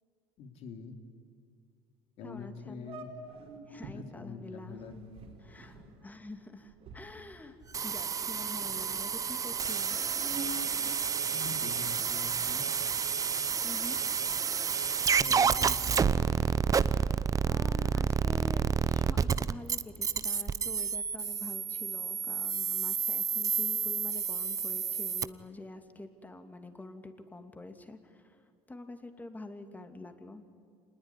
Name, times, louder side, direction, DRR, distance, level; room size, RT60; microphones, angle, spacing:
voice 1, 0.4-0.9 2.2-3.1 3.9-4.9 11.3-12.7 15.2-16.4, left 5 dB, 65° left, 5 dB, 3.0 m, -44 dB
voice 2, 2.2-2.9 3.7-4.8 5.4-7.6 7.8-10.0 13.6-14.0 17.5-18.6 18.9-28.2 28.7-30.4, left 2 dB, 15° left, 7 dB, 2.8 m, -46 dB
sound 1, 2.2-2.4 2.8-4.0 4.6-8.1 8.4-9.1 9.7-11.7, right 2 dB, 60° right, 4.3 m, -47 dB
sound 2, 7.7-25.3, right 6 dB, 30° right, 0.8 m, -30 dB
26.0 x 20.5 x 10.0 m, 2.3 s
supercardioid pair, 95°, 11 cm